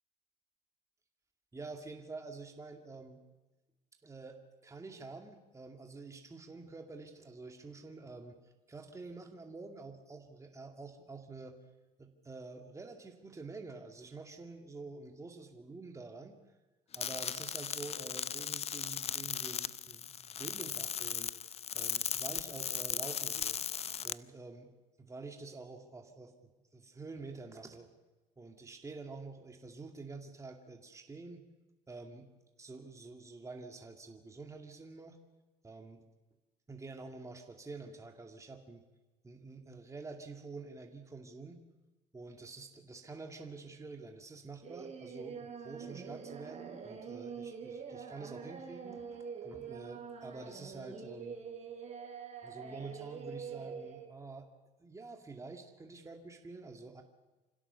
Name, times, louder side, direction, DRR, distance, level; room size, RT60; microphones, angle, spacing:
voice 1, 1.5-3.2 4.0-8.4 8.7-11.6 12.0-16.4 17.0-21.5 21.7-23.6 24.0-24.7 25.0-26.3 26.7-27.9 28.4-31.4 31.9-32.3 32.6-35.2 35.6-36.0 36.7-38.8 39.2-41.6 42.1-51.4 52.4-54.5 54.8-57.0, right 3 dB, 20° right, 3 dB, 2.4 m, -48 dB
sound 1, 16.9-24.1, left 8 dB, 40° left, 0.6 m, -37 dB
Singing, 44.6-54.1, right 6 dB, 40° right, 4.6 m, -45 dB
26.0 x 16.5 x 7.0 m, 1.1 s
cardioid pair, 110°, 17 cm